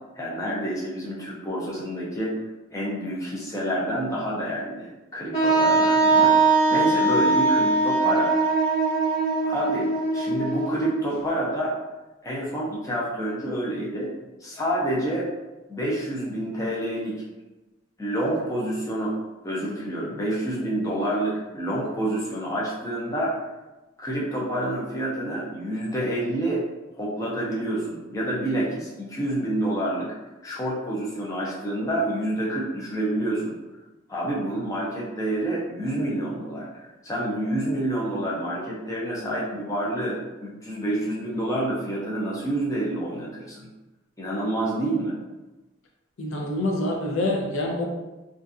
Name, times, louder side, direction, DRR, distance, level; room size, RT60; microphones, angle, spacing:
voice 1, 0.2-2.3 2.7-8.3 9.4-11.7 12.2-14.1 14.4-15.3 15.7-17.1 18.0-19.1 19.4-23.3 24.0-26.6 26.9-30.1 30.4-33.5 34.1-43.7 44.2-45.2, right 1 dB, 15° left, -6 dB, 0.5 m, -28 dB
Wind instrument woodwind instrument, 5.3-11.1, right 3 dB, 35° left, 1.1 m, -21 dB
voice 2, 46.2-47.9, left 1 dB, 75° left, 0 dB, 0.5 m, -26 dB
2.5 x 2.3 x 2.4 m, 1.1 s
head